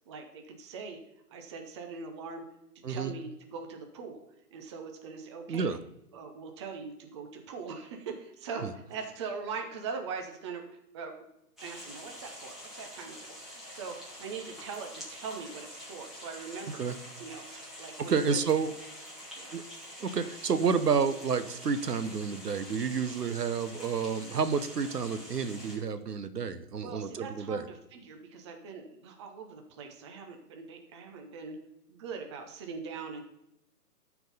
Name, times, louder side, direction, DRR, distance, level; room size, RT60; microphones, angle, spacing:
voice 1, 0.1-1.0 1.3-2.4 2.9-4.2 4.5-5.7 6.1-11.1 11.6-16.8 17.2-17.5 17.8-18.4 19.4-19.6 26.8-31.6 31.9-33.2, right 5 dB, 20° right, 4 dB, 0.7 m, -41 dB
sound 1, 11.6-25.8, left 1 dB, ahead, 1.9 m, -46 dB
voice 2, 18.0-18.7 19.5-19.6 20.0-27.7, right 5 dB, 80° right, 11 dB, 1.0 m, -30 dB
12.5 x 4.7 x 5.4 m, 0.84 s
figure-of-eight pair, 135°, 47 cm